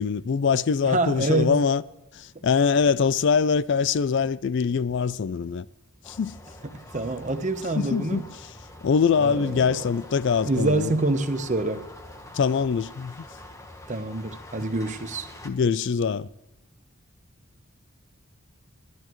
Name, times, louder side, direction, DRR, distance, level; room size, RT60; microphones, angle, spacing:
voice 1, 0.0-1.8 2.4-5.7 6.1-6.3 7.8-8.2 8.8-10.9 12.3-13.1 15.4-16.3, left 6 dB, 55° left, 0.4 m, -23 dB
voice 2, 0.8-1.6 6.6-8.2 9.2-9.8 10.4-11.8 13.9-15.3, right 2 dB, 35° right, 0.9 m, -26 dB
sound 1, 6.0-15.5, left 1 dB, 15° left, 1.2 m, -45 dB
27.0 x 11.0 x 3.1 m
head